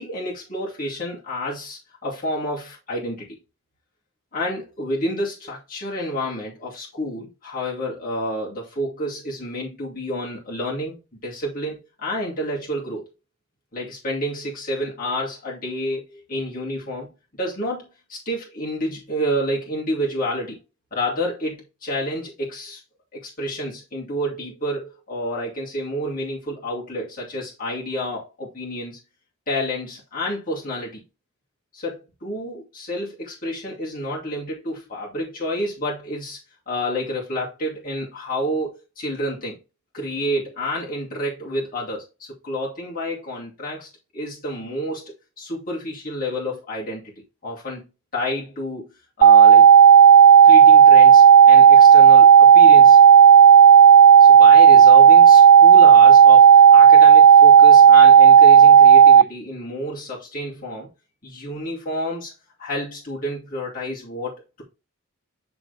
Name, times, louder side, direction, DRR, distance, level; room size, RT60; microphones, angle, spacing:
voice 1, 0.0-3.3 4.3-13.1 13.7-17.1 17.4-20.6 20.9-22.8 23.1-29.0 29.5-31.0 31.7-36.4 36.7-39.6 39.9-47.1 47.4-47.8 48.1-49.7 50.4-53.0 54.2-60.9 61.2-62.3 62.6-64.6, equal, 40° left, 2.6 m, -29 dB
sound 1, 49.2-59.2, right 8 dB, 85° right, 0.3 m, -9 dB
9.6 x 4.2 x 3.4 m
head